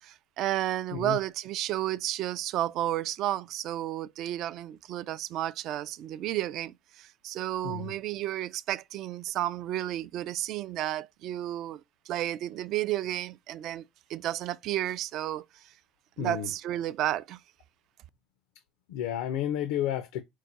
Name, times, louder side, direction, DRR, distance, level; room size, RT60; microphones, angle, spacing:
voice 1, 0.0-15.7 16.2-17.4, right 13 dB, 55° right, 0.3 m, -32 dB
voice 2, 16.2-16.5 18.9-20.2, left 10 dB, 85° left, 0.5 m, -31 dB
4.6 x 2.2 x 3.9 m
cardioid pair, 130°, 0 cm